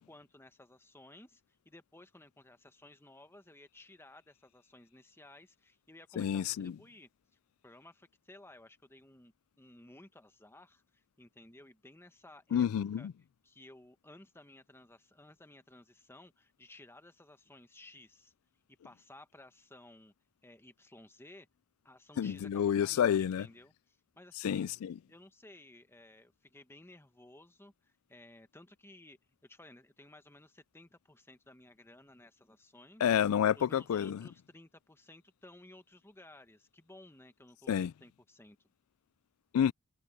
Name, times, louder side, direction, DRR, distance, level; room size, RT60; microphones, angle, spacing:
voice 1, 0.0-7.1 7.6-12.7 13.0-13.1 13.4-18.3 18.8-20.1 20.4-21.5 21.8-24.7 25.1-33.0 33.5-38.6, left 1 dB, 10° left, 1.2 m, -56 dB
voice 2, 6.2-6.7 12.5-13.1 22.2-23.5 24.4-24.9 33.0-34.2 37.7-37.9 39.5-39.7, left 9 dB, 70° left, 0.3 m, -29 dB
head